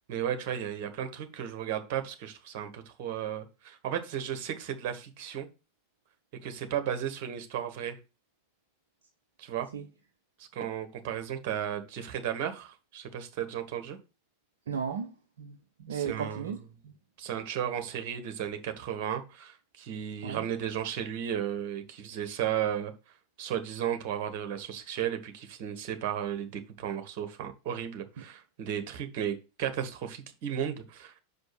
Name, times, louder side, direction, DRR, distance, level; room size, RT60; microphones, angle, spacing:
voice 1, 0.1-5.5 6.4-8.0 9.4-9.7 10.4-14.0 15.9-16.5 17.2-22.9 23.4-31.2, right 9 dB, 45° right, 1.4 m, -34 dB
voice 2, 14.7-16.9 20.2-20.4, right 7 dB, 65° right, 0.7 m, -36 dB
5.6 x 5.2 x 6.1 m
figure-of-eight pair, 90°, 0 cm